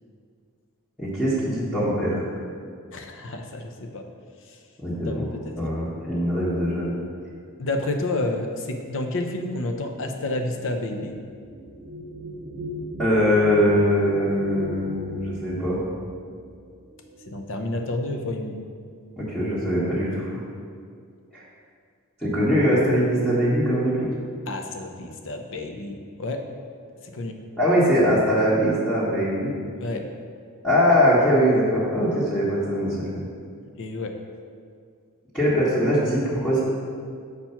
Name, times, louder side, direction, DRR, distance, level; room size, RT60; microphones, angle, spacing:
voice 1, 1.0-2.3 4.8-5.3 5.6-7.0 13.0-15.8 19.2-20.4 21.3-21.4 22.2-24.1 27.6-29.5 30.6-33.2 35.3-36.6, equal, 5° left, -12 dB, 1.4 m, -22 dB
voice 2, 2.9-4.0 5.0-5.5 7.6-11.2 17.3-18.6 24.5-26.4 27.1-27.3 29.8-30.1 33.8-34.2, left 2 dB, 60° left, 5 dB, 0.7 m, -30 dB
sound 1, 9.9-18.0 18.9-19.1 19.4-20.0, equal, 45° right, 1.1 m, -38 dB
7.0 x 4.5 x 5.7 m, 2.2 s
head